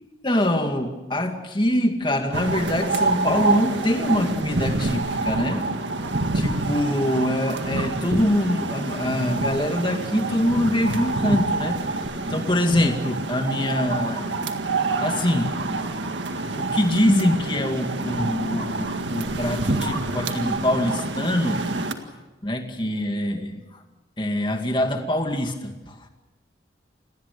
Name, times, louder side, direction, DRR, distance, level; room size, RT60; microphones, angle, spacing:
voice 1, 0.2-5.7 6.3-11.8 12.3-14.4 15.0-15.6 16.6-21.6 22.4-23.8 24.2-26.0, left 1 dB, 25° left, 5 dB, 2.2 m, -24 dB
sound 1, 2.3-21.9, right 2 dB, 90° right, 1.9 m, -27 dB
28.5 x 19.5 x 6.8 m, 1.1 s
head